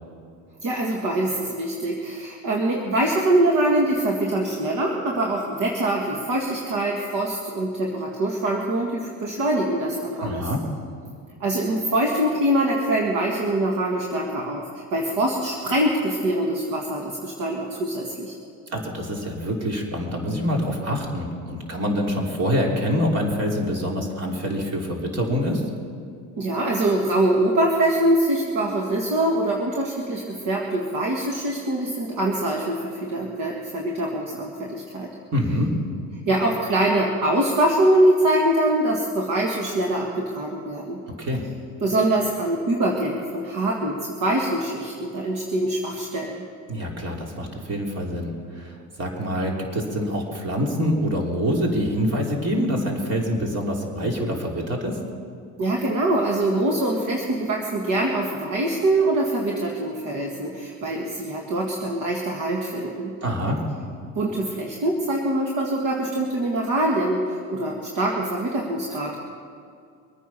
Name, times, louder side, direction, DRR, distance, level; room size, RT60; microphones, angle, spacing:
voice 1, 0.6-10.5 11.4-18.3 26.4-35.1 36.3-41.0 41.8-46.4 55.6-63.1 64.2-69.2, right 1 dB, 60° right, -1 dB, 2.0 m, -24 dB
voice 2, 10.2-10.6 18.7-25.6 35.3-35.8 41.2-41.4 46.7-55.0 63.2-63.6, equal, 45° right, 0 dB, 3.5 m, -25 dB
23.5 x 9.5 x 5.8 m, 2.3 s
cardioid pair, 100°, 36 cm